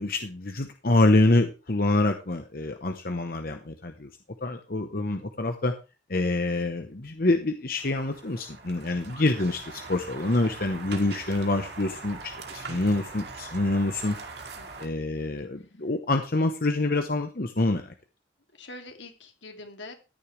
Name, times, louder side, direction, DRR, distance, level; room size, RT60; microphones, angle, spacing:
voice 1, 0.0-4.1 4.4-5.7 6.1-14.2 14.8-17.9, left 2 dB, 50° left, 6 dB, 1.0 m, -26 dB
sound 1, 7.8-14.9, right 4 dB, 60° right, 2.4 m, -42 dB
voice 2, 14.6-14.9 15.6-15.7 18.5-19.9, left 2 dB, 80° left, 4 dB, 2.6 m, -44 dB
14.0 x 10.0 x 3.3 m, 0.31 s
head